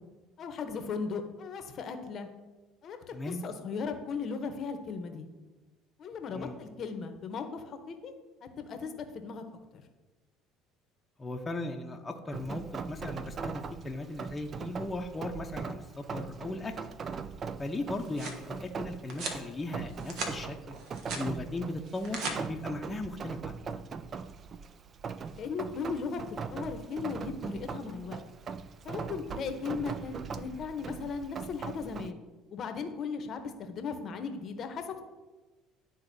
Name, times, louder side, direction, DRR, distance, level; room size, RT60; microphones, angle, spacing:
voice 1, 0.4-2.3 2.8-3.2 3.4-5.3 6.0-8.1 8.6-9.4 9.7-9.8 25.3-26.2 26.5-28.2 28.8-32.2 32.5-34.8, left 5 dB, 50° left, 7 dB, 0.7 m, -37 dB
voice 2, 3.1-3.4 6.3-6.6 11.2-16.9 17.6-20.7 21.1-23.8, left 2 dB, 20° left, 2 dB, 0.6 m, -37 dB
Rain, 12.3-32.1, right 5 dB, 40° right, 0.4 m, -40 dB
sound 1, 17.8-18.4 19.1-19.4 19.9-20.4 20.7-21.3 21.9-22.4, right 3 dB, 70° right, 1.1 m, -37 dB
11.5 x 3.9 x 2.7 m, 1.2 s
supercardioid pair, 85°, 0 cm